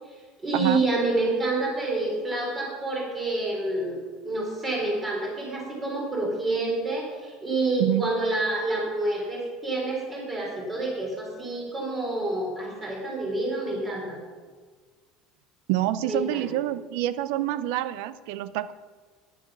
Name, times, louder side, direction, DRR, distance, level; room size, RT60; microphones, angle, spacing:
voice 1, 0.1-4.0 4.2-14.2 16.0-16.5, right 2 dB, 20° right, -2 dB, 3.9 m, -28 dB
voice 2, 15.7-18.7, right 14 dB, 75° right, 16 dB, 0.6 m, -27 dB
10.5 x 9.8 x 6.3 m, 1.5 s
cardioid pair, 145°, 0 cm